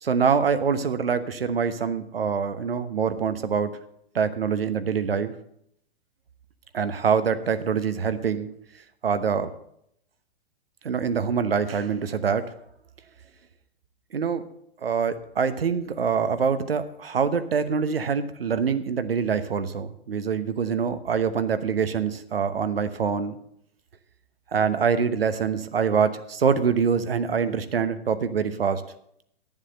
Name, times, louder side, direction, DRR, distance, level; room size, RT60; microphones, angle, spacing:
voice 1, 0.0-3.7 4.1-5.3 6.7-8.5 9.0-9.5 10.8-12.5 14.1-14.4 14.8-23.4 24.5-28.8, right 6 dB, 75° right, 12 dB, 1.0 m, -25 dB
11.0 x 7.3 x 6.7 m, 0.73 s
figure-of-eight pair, 115°, 30 cm